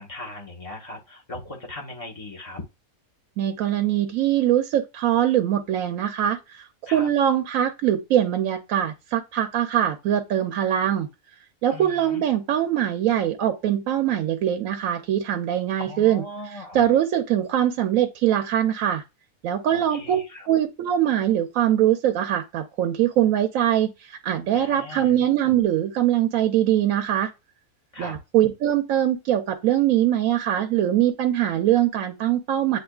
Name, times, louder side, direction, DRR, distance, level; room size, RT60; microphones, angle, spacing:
voice 1, 0.0-2.6 6.9-7.1 11.7-12.2 15.8-16.9 19.7-20.5 24.5-25.1 27.9-28.2, left 2 dB, 30° left, 0.9 m, -39 dB
voice 2, 3.4-11.1 11.6-16.2 16.7-19.0 19.4-20.2 20.5-27.3 28.0-32.8, right 11 dB, 75° right, 1.0 m, -22 dB
8.1 x 2.7 x 2.3 m
omnidirectional pair, 1.5 m